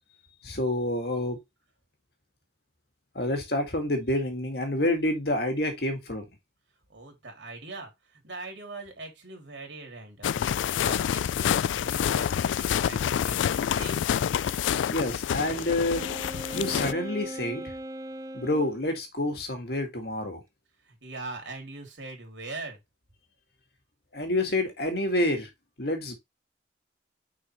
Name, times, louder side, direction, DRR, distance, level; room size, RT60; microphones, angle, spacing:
voice 1, 0.4-1.4 3.1-6.2 14.4-14.6 14.9-16.1 16.5-17.7 18.3-20.4 24.1-25.5 25.8-26.2, left 1 dB, 55° left, 2.0 m, -28 dB
voice 2, 6.9-14.1 20.8-22.8, right 3 dB, 80° right, 3.1 m, -42 dB
sound 1, 10.2-16.9, left 9 dB, 85° left, 0.3 m, -27 dB
Wind instrument woodwind instrument, 15.9-18.8, right 1 dB, 20° right, 0.6 m, -39 dB
6.4 x 5.4 x 3.0 m
head